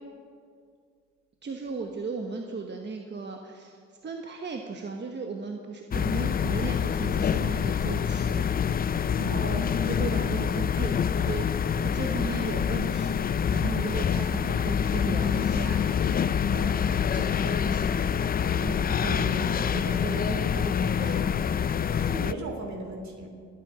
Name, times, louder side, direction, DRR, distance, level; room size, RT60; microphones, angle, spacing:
voice 1, 1.4-16.2 16.5-17.9 18.9-21.2, right 4 dB, 35° right, 3 dB, 1.2 m, -36 dB
sound 1, 5.9-22.3, left 7 dB, 30° left, 0.4 m, -26 dB
voice 2, 9.3-9.8 12.1-12.4 18.5-19.1 21.9-23.3, right 2 dB, 65° right, 3 dB, 3.3 m, -37 dB
25.5 x 9.1 x 5.1 m, 2.2 s
cardioid pair, 90°, 30 cm